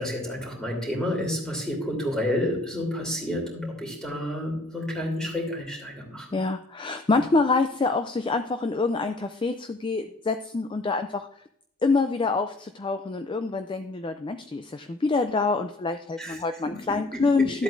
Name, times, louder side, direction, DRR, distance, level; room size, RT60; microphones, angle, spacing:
voice 1, 0.0-6.3 7.1-7.2 16.2-16.4 16.6-17.6, left 1 dB, 5° left, 0 dB, 2.9 m, -30 dB
voice 2, 6.3-11.3 11.8-17.6, left 3 dB, 25° left, 9 dB, 0.4 m, -26 dB
13.0 x 8.0 x 2.6 m, 0.68 s
head